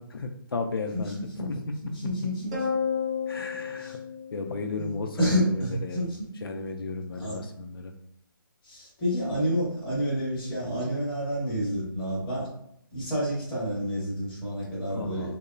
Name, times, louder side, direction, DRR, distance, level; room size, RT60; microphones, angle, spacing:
voice 1, 0.0-1.7 3.3-4.0 4.3-6.0 6.4-7.9 14.9-15.4, left 4 dB, 85° left, 4 dB, 0.4 m, -34 dB
voice 2, 1.8-2.7 3.8-4.0 4.8-6.3 7.1-7.4 8.6-12.5 12.9-15.4, equal, 10° left, -9 dB, 0.8 m, -29 dB
sound 1, 2.5-5.1, left 6 dB, 15° right, 0.3 m, -31 dB
2.8 x 2.0 x 2.4 m, 0.74 s
hypercardioid pair, 160°, 12 cm